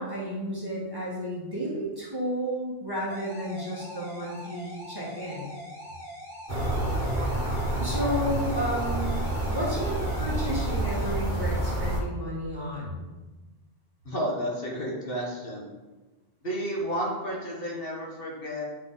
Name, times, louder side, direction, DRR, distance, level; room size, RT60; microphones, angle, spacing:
voice 1, 0.0-5.5 7.8-9.2 9.5-13.1, equal, 20° right, -7 dB, 1.7 m, -32 dB
sound 1, 3.1-11.1, equal, ahead, 2.1 m, -43 dB
sound 2, 6.5-12.0, right 1 dB, 45° right, 1.1 m, -28 dB
voice 2, 14.0-15.7 16.4-18.6, equal, 55° left, -3 dB, 1.5 m, -32 dB
8.4 x 4.1 x 3.8 m, 1.2 s
omnidirectional pair, 1.2 m